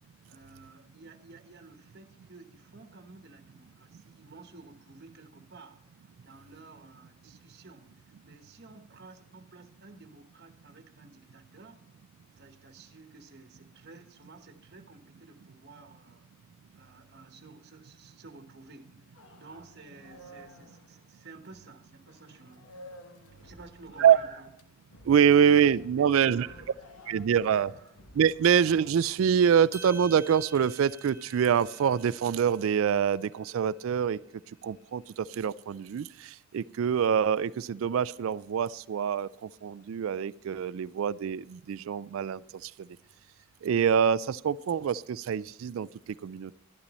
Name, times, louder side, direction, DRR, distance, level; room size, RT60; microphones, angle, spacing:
voice 1, 0.3-11.8 12.4-16.3 16.7-19.0 19.4-22.7 23.4-24.5 26.0-28.0, right 3 dB, 50° right, 6 dB, 1.2 m, -52 dB
sound 1, 19.1-21.7 22.0-28.9, left 1 dB, 70° left, 1.2 m, -52 dB
voice 2, 25.0-26.5 27.1-27.7 28.1-34.2 34.6-42.9 43.6-46.5, right 8 dB, 75° right, 18 dB, 0.3 m, -25 dB
sound 2, 29.7-34.1, right 3 dB, 10° right, 1.0 m, -50 dB
12.5 x 11.5 x 4.1 m, 0.80 s
head